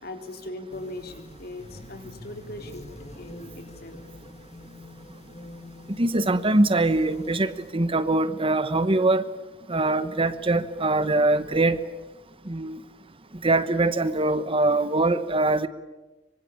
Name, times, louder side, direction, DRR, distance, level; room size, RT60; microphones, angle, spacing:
voice 1, 0.0-2.8 3.2-4.0, left 1 dB, 55° left, 5 dB, 3.7 m, -39 dB
sound 1, 0.7-7.7, left 1 dB, 35° left, 1.8 m, -46 dB
voice 2, 6.0-9.2 9.7-11.8 12.5-12.8 13.4-15.7, right 2 dB, 30° right, 12 dB, 1.1 m, -23 dB
25.5 x 25.0 x 8.7 m, 1.1 s
head